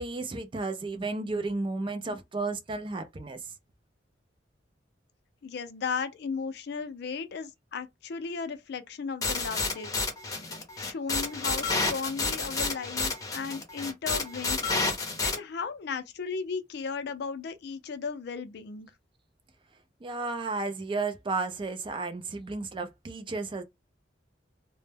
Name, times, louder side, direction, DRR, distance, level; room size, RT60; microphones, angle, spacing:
voice 1, 0.0-3.4 20.0-23.6, right 3 dB, 30° right, 0.4 m, -33 dB
voice 2, 5.4-9.9 10.2-14.6 15.2-18.9, left 5 dB, 60° left, 0.4 m, -35 dB
sound 1, 9.2-15.4, left 3 dB, 20° left, 0.6 m, -30 dB
2.1 x 2.0 x 3.3 m
head